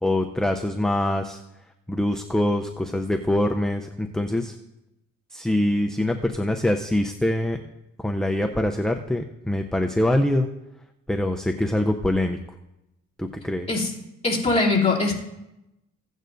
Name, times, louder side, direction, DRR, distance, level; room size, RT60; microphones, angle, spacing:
voice 1, 0.0-1.4 1.9-4.5 5.3-7.6 8.0-10.5 11.1-12.4 13.2-13.7, left 1 dB, ahead, 5 dB, 0.5 m, -24 dB
voice 2, 14.2-15.1, left 3 dB, 20° left, -4 dB, 2.7 m, -21 dB
16.5 x 9.0 x 2.6 m, 0.91 s
cardioid pair, 90°, 30 cm